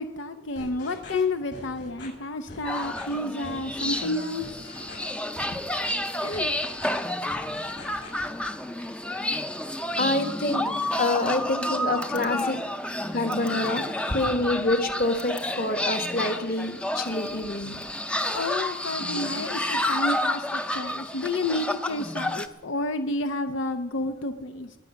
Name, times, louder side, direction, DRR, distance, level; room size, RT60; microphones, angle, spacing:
voice 1, 0.0-4.7 5.5-5.6 6.2-6.5 12.4-12.5 18.3-24.7, left 2 dB, 85° left, 0.8 m, -30 dB
sound 1, 0.6-1.2 1.5-2.1 2.5-3.1 3.4-4.0 4.4-5.1 5.4-5.9 6.3-7.0 7.3-8.2, left 2 dB, 65° left, 7.0 m, -43 dB
sound 2, 2.6-22.5, left 1 dB, 5° left, 0.5 m, -30 dB
voice 2, 10.0-10.6 11.0-12.6 13.1-17.8, left 2 dB, 50° left, 1.5 m, -27 dB
20.5 x 9.4 x 6.3 m
head